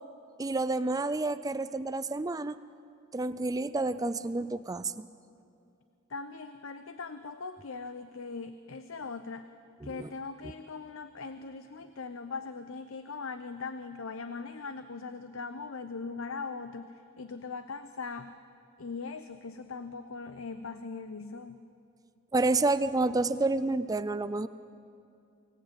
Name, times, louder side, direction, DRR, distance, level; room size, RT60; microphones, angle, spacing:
voice 1, 0.4-2.6 3.1-5.1 9.8-10.1 22.3-24.5, right 2 dB, 15° right, 13 dB, 0.4 m, -29 dB
voice 2, 6.1-9.5 9.8-18.3 18.8-21.6, left 4 dB, 75° left, 10 dB, 0.8 m, -40 dB
24.0 x 17.0 x 8.8 m, 2.5 s
head